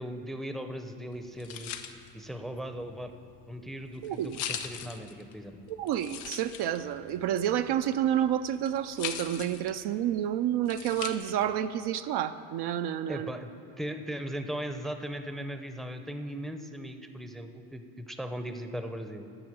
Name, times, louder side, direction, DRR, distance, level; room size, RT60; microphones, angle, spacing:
voice 1, 0.0-1.7 2.1-3.1 3.5-5.6 13.1-13.5 13.8-19.3, equal, ahead, 7 dB, 0.6 m, -38 dB
sound 1, 1.1-11.6, left 9 dB, 85° left, 0.7 m, -42 dB
voice 2, 4.0-4.4 5.7-13.3, right 10 dB, 55° right, 9 dB, 0.5 m, -29 dB
9.0 x 5.9 x 7.8 m, 2.6 s
supercardioid pair, 70°, 47 cm